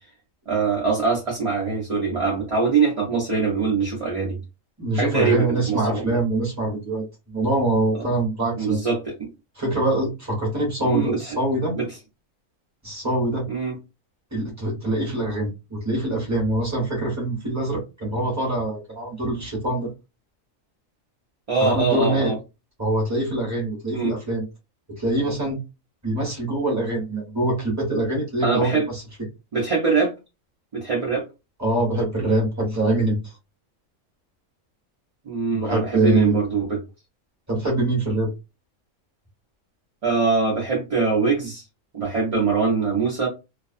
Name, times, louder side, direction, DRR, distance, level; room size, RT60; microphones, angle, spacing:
voice 1, 0.5-4.4 4.9-6.1 8.6-9.3 10.8-11.4 11.7-11.8 13.5-13.7 21.5-22.4 23.9-24.1 28.4-28.9 29.5-30.1 30.7-31.2 35.3-36.8 40.0-41.6 41.9-43.3, right 4 dB, 35° right, 0.6 m, -23 dB
voice 2, 4.8-8.8 9.6-11.8 12.8-13.5 14.3-19.9 21.6-22.3 22.8-24.4 25.0-25.6 26.0-29.0 31.6-33.3 35.5-36.4 37.5-38.3, right 1 dB, 15° right, 1.0 m, -24 dB
2.4 x 2.2 x 2.5 m
omnidirectional pair, 1.4 m